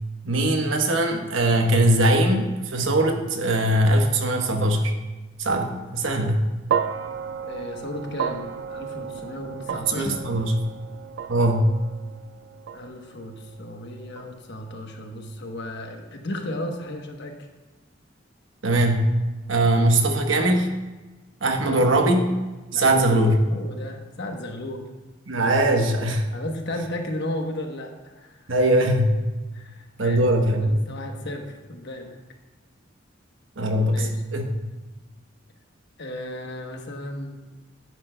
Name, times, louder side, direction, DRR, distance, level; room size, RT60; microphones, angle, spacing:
voice 1, 0.2-4.9 5.4-6.4 9.7-10.6 11.3-11.7 18.6-19.1 19.5-20.7 21.4-22.3 22.7-23.4 25.3-26.3 28.5-29.2 30.0-30.8 33.6-34.5, right 1 dB, 80° right, 3 dB, 1.1 m, -21 dB
sound 1, 6.7-15.0, right 7 dB, 65° right, 0.3 m, -33 dB
voice 2, 7.5-10.2 12.7-17.4 21.4-21.8 22.7-22.8 23.5-24.9 26.3-28.4 29.5-32.2 33.9-34.2 36.0-37.4, left 1 dB, 65° left, 3 dB, 1.1 m, -34 dB
10.5 x 9.2 x 2.2 m, 1.2 s
head